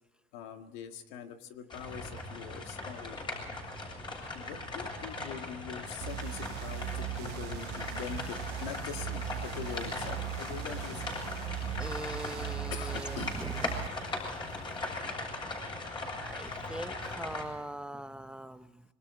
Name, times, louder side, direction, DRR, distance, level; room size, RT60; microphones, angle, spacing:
voice 1, 0.3-3.2 4.3-11.1 12.7-13.4, left 8 dB, 90° left, 6 dB, 1.9 m, -43 dB
sound 1, 1.7-17.4, left 2 dB, 25° left, 7.5 m, -39 dB
sound 2, 6.0-13.9, right 14 dB, 70° right, 0.9 m, -39 dB
sound 3, 8.1-15.1, left 2 dB, 45° left, 4.9 m, -51 dB
voice 2, 11.8-13.7 16.2-18.8, right 1 dB, 5° right, 11 dB, 0.7 m, -42 dB
26.5 x 22.0 x 4.9 m, 1.1 s
cardioid pair, 125°, 17 cm